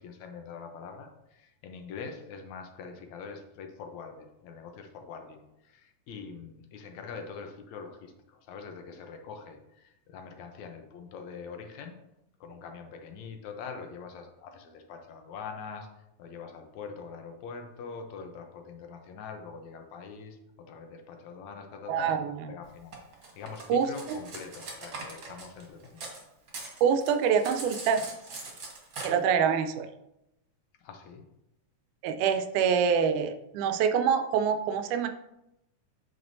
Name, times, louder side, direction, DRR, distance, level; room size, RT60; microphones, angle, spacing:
voice 1, 0.0-11.9 12.4-15.9 16.2-23.0 23.4-26.1 30.8-31.3, left 5 dB, 75° left, 5 dB, 2.0 m, -44 dB
voice 2, 21.9-22.6 23.7-24.2 26.8-28.0 29.0-29.9 32.0-35.1, right 7 dB, 85° right, 7 dB, 2.1 m, -26 dB
Cutlery silverware, 22.9-26.2 26.5-29.1, right 3 dB, 50° right, 1.8 m, -41 dB
8.6 x 6.2 x 2.6 m, 0.86 s
omnidirectional pair, 3.5 m